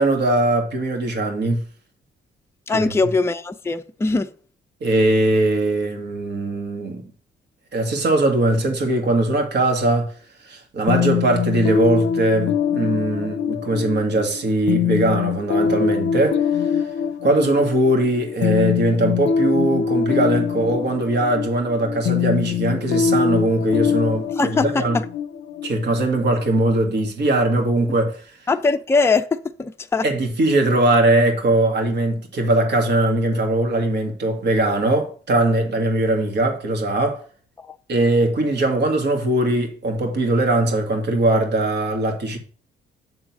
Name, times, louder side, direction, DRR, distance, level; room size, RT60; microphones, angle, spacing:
voice 1, 0.0-1.6 2.7-2.9 4.8-7.1 7.7-10.1 10.4-16.8 17.2-25.0 25.6-28.2 30.0-37.2 37.9-42.4, right 2 dB, 60° right, 2.0 m, -20 dB
voice 2, 2.7-4.3 24.4-25.0 28.5-30.1 37.6-37.8, left 3 dB, 10° left, 0.5 m, -21 dB
sound 1, 10.9-26.5, left 7 dB, 65° left, 0.6 m, -23 dB
7.9 x 3.8 x 6.0 m
cardioid pair, 90°, 20 cm